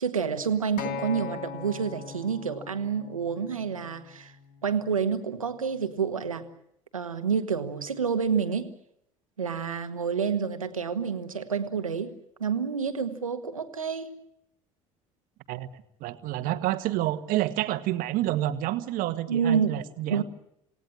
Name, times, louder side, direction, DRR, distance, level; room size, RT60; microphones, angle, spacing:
voice 1, 0.0-4.3 4.6-6.4 6.9-8.7 9.4-12.1 12.4-14.1 19.3-19.8 20.1-20.2, right 6 dB, 85° right, 8 dB, 1.7 m, -28 dB
Acoustic guitar, 0.8-5.0 5.9-6.0, left 7 dB, 55° left, 2.2 m, -40 dB
voice 2, 15.5-20.2, right 14 dB, 55° right, 10 dB, 1.7 m, -29 dB
28.0 x 18.0 x 8.9 m, 0.76 s
figure-of-eight pair, 60°, 17 cm